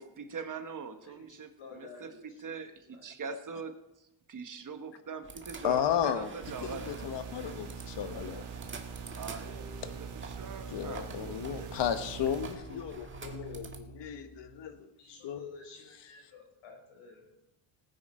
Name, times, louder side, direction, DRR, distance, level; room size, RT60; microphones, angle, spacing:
voice 1, 0.0-2.1 2.4-3.7 4.3-7.0 9.1-11.7, right 5 dB, 40° right, 8 dB, 1.2 m, -42 dB
voice 2, 1.0-2.4 2.9-3.1 15.0-17.4, left 4 dB, 80° left, 2 dB, 4.8 m, -51 dB
sound 1, 5.2-13.8, right 4 dB, 25° right, 1.6 m, -48 dB
voice 3, 5.6-6.3 6.6-8.5 9.8-9.9 10.7-14.9 15.2-15.4, left 9 dB, 60° left, 10 dB, 1.3 m, -34 dB
sound 2, 6.4-12.6, right 6 dB, 85° right, 2.5 m, -43 dB
sound 3, 9.4-14.8, right 3 dB, 15° left, 1.9 m, -51 dB
18.5 x 9.5 x 4.3 m, 0.90 s
cardioid pair, 115°, 49 cm